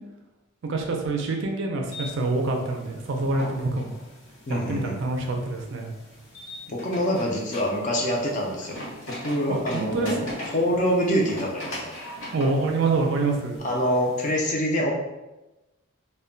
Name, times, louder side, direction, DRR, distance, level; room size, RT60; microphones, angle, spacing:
voice 1, 0.7-3.9 4.5-5.9 9.5-10.3 12.3-13.6, right 3 dB, 55° right, 2 dB, 0.4 m, -26 dB
sound 1, 1.9-14.3, left 1 dB, 65° left, 0.8 m, -40 dB
voice 2, 4.5-5.0 6.7-10.2 10.5-11.9 13.6-14.9, equal, 35° left, -1 dB, 0.4 m, -25 dB
2.2 x 2.1 x 3.7 m, 1.0 s
head